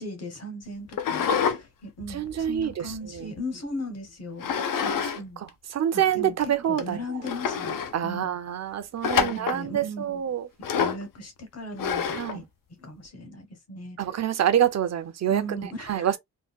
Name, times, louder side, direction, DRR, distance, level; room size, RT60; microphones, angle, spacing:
voice 1, 0.0-4.5 4.8-5.4 5.9-8.3 9.2-10.3 10.7-12.4 12.8-14.0 15.3-16.2, left 1 dB, 45° left, 1.0 m, -38 dB
sound 1, 0.9-1.6 2.0-3.4 4.4-5.2 5.5-5.6 6.3-6.4 6.8-6.9 7.2-7.9 9.0-9.6 10.6-11.1 11.8-12.4, left 7 dB, 70° left, 0.6 m, -27 dB
voice 2, 2.1-2.7 3.1-3.3 5.7-7.0 7.9-10.5 12.2-12.4 14.0-15.4 15.9-16.2, right 10 dB, 50° right, 0.5 m, -26 dB
3.7 x 2.2 x 2.2 m
wide cardioid pair, 165°, 34 cm